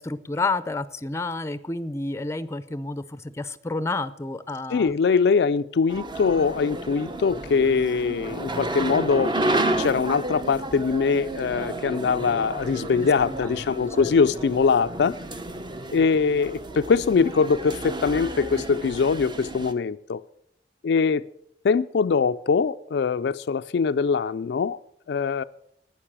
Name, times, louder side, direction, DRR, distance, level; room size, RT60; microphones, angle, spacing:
voice 1, 0.0-5.0 13.3-13.5 13.8-14.1, left 3 dB, 15° left, 14 dB, 0.5 m, -30 dB
voice 2, 4.7-15.2 15.9-20.2 20.8-21.2 21.6-24.8 25.1-25.4, left 5 dB, 70° left, 12 dB, 0.4 m, -22 dB
sound 1, 5.9-19.7, right 2 dB, 25° right, 0.8 m, -31 dB
11.5 x 9.4 x 7.3 m, 0.76 s
head